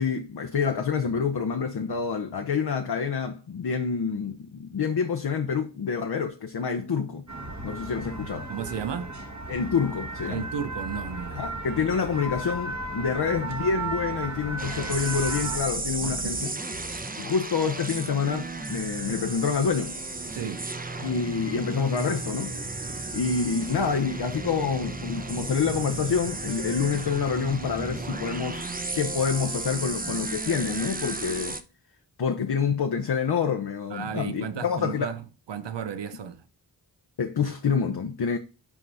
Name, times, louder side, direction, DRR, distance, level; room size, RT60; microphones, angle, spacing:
voice 1, 0.0-7.2 7.6-8.5 9.5-10.4 11.4-16.5 17.2-20.0 21.0-22.5 23.1-28.6 28.9-31.6 32.2-35.1 37.2-38.4, left 6 dB, 60° left, 0.7 m, -27 dB
sound 1, 7.3-15.6, right 2 dB, 40° right, 1.3 m, -35 dB
voice 2, 8.5-9.2 10.3-11.5 16.0-16.4 16.9-17.0 20.3-20.7 33.9-36.4, right 7 dB, 75° right, 0.6 m, -34 dB
sound 2, 14.6-31.6, right 3 dB, 20° right, 0.7 m, -34 dB
5.9 x 4.6 x 4.0 m
wide cardioid pair, 55°, 43 cm